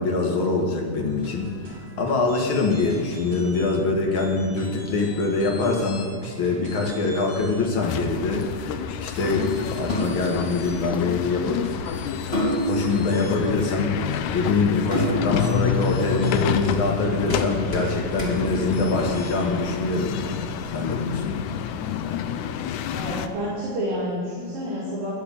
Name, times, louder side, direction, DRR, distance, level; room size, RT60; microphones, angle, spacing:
voice 1, 0.0-11.6 12.7-14.0 14.3-20.4 20.7-21.4, left 3 dB, 50° left, 0 dB, 1.9 m, -24 dB
sound 1, 1.1-19.6, equal, 35° right, 3.5 m, -42 dB
sound 2, 7.4-19.5, equal, 20° left, 2.5 m, -32 dB
sound 3, 7.8-23.3, left 9 dB, 80° left, 2.0 m, -29 dB
voice 2, 22.9-25.1, equal, 90° right, -9 dB, 4.6 m, -29 dB
13.0 x 6.9 x 8.5 m, 2.2 s
omnidirectional pair, 3.8 m